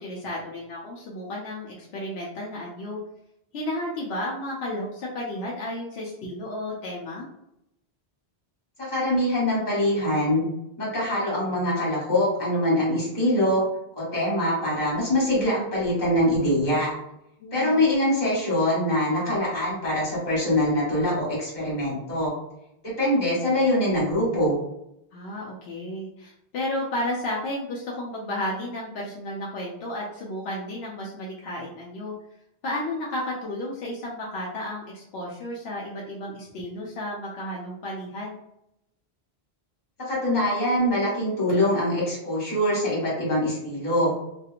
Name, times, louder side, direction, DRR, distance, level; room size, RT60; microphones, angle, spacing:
voice 1, 0.0-3.0 3.5-7.3 17.4-17.9 25.1-32.1 32.6-38.4, left 1 dB, 80° left, -4 dB, 0.8 m, -33 dB
voice 2, 8.9-10.4 10.8-13.6 14.0-16.9 17.5-22.3 22.8-24.5 40.1-44.1, left 1 dB, 45° left, -7 dB, 1.5 m, -23 dB
2.8 x 2.5 x 2.4 m, 0.81 s
omnidirectional pair, 1.0 m